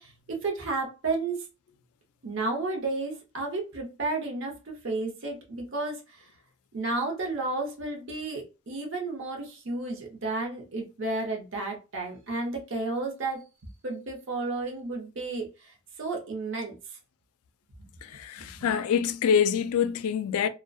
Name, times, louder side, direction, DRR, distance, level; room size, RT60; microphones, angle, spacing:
voice 1, 0.0-1.4 2.2-6.0 6.7-13.4 13.8-15.5 16.0-16.7 17.8-18.7, right 3 dB, 60° right, 0.7 m, -32 dB
voice 2, 18.0-20.5, left 7 dB, 85° left, 0.3 m, -25 dB
2.3 x 2.1 x 2.5 m
head